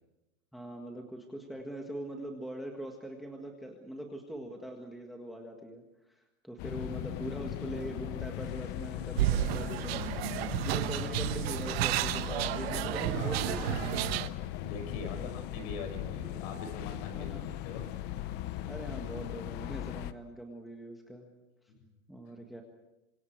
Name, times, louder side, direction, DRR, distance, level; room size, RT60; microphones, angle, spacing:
voice 1, 0.5-13.9 15.0-15.3 17.1-17.5 18.7-21.3 22.1-22.6, right 1 dB, ahead, 2 dB, 1.7 m, -42 dB
sound 1, 6.6-20.1, left 12 dB, 25° left, 0.8 m, -38 dB
sound 2, 9.2-14.3, right 14 dB, 50° right, 1.1 m, -31 dB
voice 2, 14.4-17.9 21.7-21.8, left 4 dB, 45° left, 7 dB, 6.4 m, -43 dB
28.0 x 26.0 x 4.7 m, 1.0 s
supercardioid pair, 155°, 40 cm